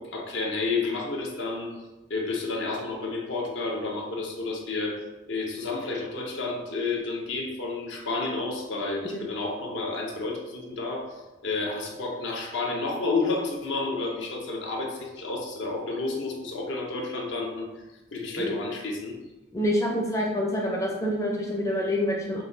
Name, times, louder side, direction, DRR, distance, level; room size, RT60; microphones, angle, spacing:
voice 1, 0.0-1.7 2.1-5.0 5.3-11.1 11.4-17.7 18.1-19.2, left 3 dB, 70° left, 1 dB, 0.6 m, -30 dB
voice 2, 19.5-22.4, equal, 15° left, -3 dB, 0.4 m, -27 dB
5.5 x 2.2 x 2.5 m, 1.1 s
head